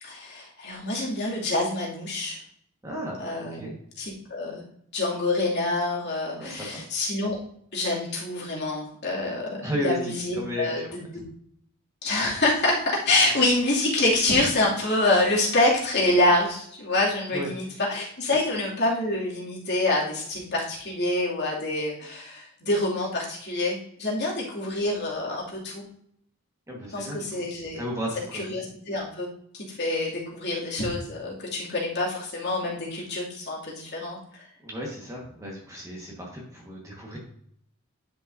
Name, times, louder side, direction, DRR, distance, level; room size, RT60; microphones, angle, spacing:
voice 1, 0.0-2.4 3.2-3.6 4.0-4.6 4.9-7.4 7.7-10.8 11.1-11.2 12.0-17.6 17.9-25.9 26.9-27.9 28.3-29.3 29.5-34.5, left 2 dB, 55° left, -4 dB, 2.5 m, -26 dB
voice 2, 2.8-3.2 3.5-3.7 6.4-6.8 9.6-10.9 17.3-17.5 18.3-18.4 26.7-27.4 27.7-28.4 34.6-37.2, equal, 15° right, -3 dB, 1.5 m, -34 dB
10.0 x 5.5 x 2.7 m, 0.67 s
head